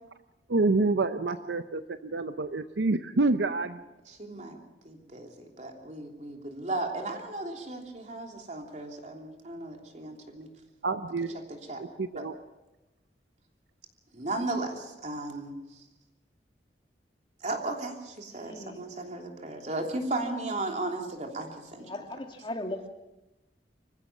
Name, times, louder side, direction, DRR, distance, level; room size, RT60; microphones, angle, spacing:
voice 1, 0.5-3.8 10.8-11.4 11.8-12.3, right 3 dB, 80° right, 10 dB, 0.7 m, -27 dB
voice 2, 4.2-4.6 4.8-10.5 11.7-11.8 14.1-15.8 17.4-21.8, right 2 dB, 45° right, 2 dB, 3.1 m, -35 dB
voice 3, 18.3-18.8 21.8-22.9, left 1 dB, 30° left, 5 dB, 1.8 m, -38 dB
25.5 x 15.0 x 7.2 m, 1.0 s
head